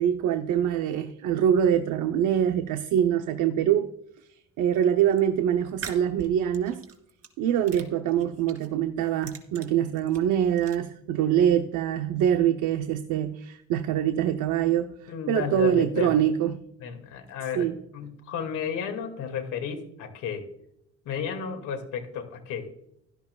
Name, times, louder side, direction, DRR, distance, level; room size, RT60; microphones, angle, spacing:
voice 1, 0.0-3.9 4.6-6.8 7.4-16.6 17.5-17.8, right 9 dB, 90° right, 0.7 m, -24 dB
sound 1, 4.8-5.2 5.7-7.3 7.6-8.7 9.1-10.8, right 6 dB, 50° right, 2.7 m, -43 dB
voice 2, 15.1-16.2 16.8-20.5 21.1-22.7, left 7 dB, 90° left, 2.2 m, -33 dB
16.0 x 12.0 x 2.3 m
cardioid pair, 90°, 30 cm